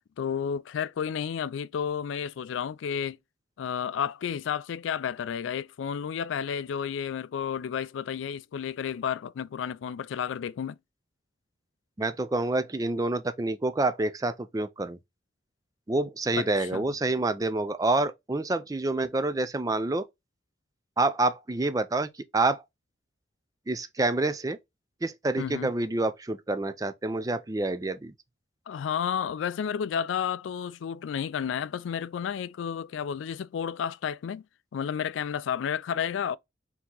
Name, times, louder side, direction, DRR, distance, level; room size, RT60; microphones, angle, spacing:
voice 1, 0.2-3.2 3.6-10.8 16.4-16.8 25.4-25.7 28.7-34.4 34.7-36.4, left 8 dB, 85° left, 0.3 m, -31 dB
voice 2, 12.0-15.0 15.9-20.1 21.0-22.6 23.7-24.6 25.0-28.1, right 2 dB, 20° right, 0.4 m, -27 dB
4.5 x 2.8 x 3.8 m
head